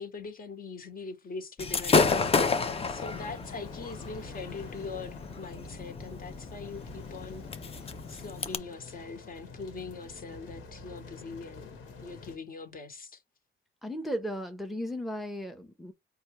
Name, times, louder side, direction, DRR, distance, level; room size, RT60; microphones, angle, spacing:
voice 1, 0.0-2.1 2.9-7.5 8.1-13.2, left 4 dB, 45° left, 1.3 m, -42 dB
Gunshot gunfire / Fireworks, 1.6-8.6, left 4 dB, 30° left, 0.6 m, -30 dB
sound 1, 2.5-12.4, left 3 dB, 85° left, 1.4 m, -47 dB
voice 2, 13.8-15.9, equal, ahead, 0.7 m, -35 dB
4.3 x 2.4 x 3.1 m
cardioid pair, 90°, 20 cm